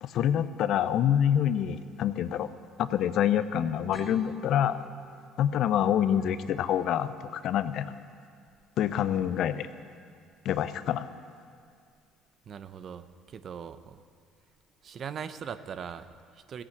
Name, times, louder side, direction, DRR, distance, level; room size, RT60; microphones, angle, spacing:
voice 1, 0.0-2.5 2.8-4.8 5.4-7.9 8.8-9.7 10.4-11.1, left 10 dB, 65° left, 13 dB, 0.7 m, -26 dB
sound 1, 3.9-6.9, right 1 dB, 5° right, 2.7 m, -49 dB
voice 2, 12.5-14.0 14.8-16.6, right 7 dB, 50° right, 12 dB, 0.8 m, -40 dB
15.5 x 8.8 x 7.9 m, 2.3 s
supercardioid pair, 75°, 0 cm